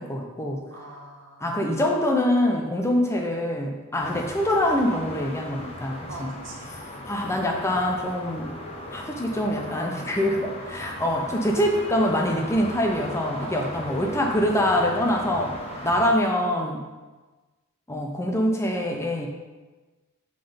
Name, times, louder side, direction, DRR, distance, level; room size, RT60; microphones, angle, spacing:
voice 1, 0.0-0.6 1.4-6.3 7.1-8.5 8.9-15.6 15.8-16.8 17.9-19.3, left 1 dB, 10° left, 1 dB, 0.6 m, -24 dB
voice 2, 0.7-1.6 6.1-6.8 10.6-11.0 13.4-14.0 15.6-16.0, right 2 dB, 60° right, -1 dB, 1.4 m, -43 dB
sound 1, 4.0-16.1, left 1 dB, 30° left, 0.9 m, -38 dB
7.4 x 3.9 x 5.1 m, 1.2 s
head